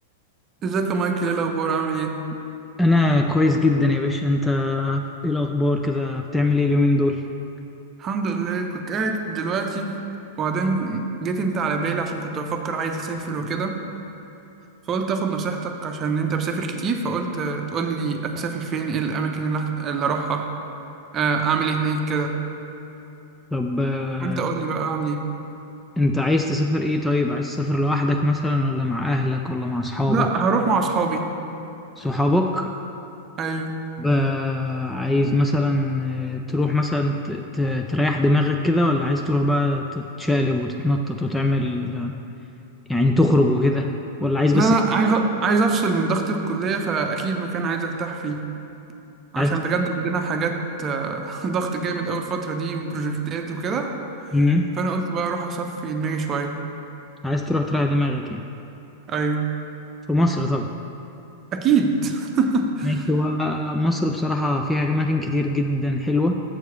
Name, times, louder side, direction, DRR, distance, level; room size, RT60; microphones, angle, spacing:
voice 1, 0.6-2.3 8.0-10.0 10.4-13.8 14.9-20.5 21.1-22.4 24.2-25.3 30.1-31.4 33.4-33.9 44.5-48.5 49.3-53.9 54.8-56.6 59.1-59.5 61.5-63.1, right 4 dB, 30° right, 5 dB, 0.7 m, -24 dB
voice 2, 2.8-7.2 23.5-24.4 26.0-30.3 32.0-32.7 34.0-42.1 42.9-44.7 49.4-49.6 54.3-54.7 57.2-58.4 60.1-60.7 62.8-66.4, left 2 dB, 5° left, 3 dB, 0.4 m, -22 dB
7.5 x 4.7 x 6.8 m, 2.9 s
figure-of-eight pair, 95°, 0 cm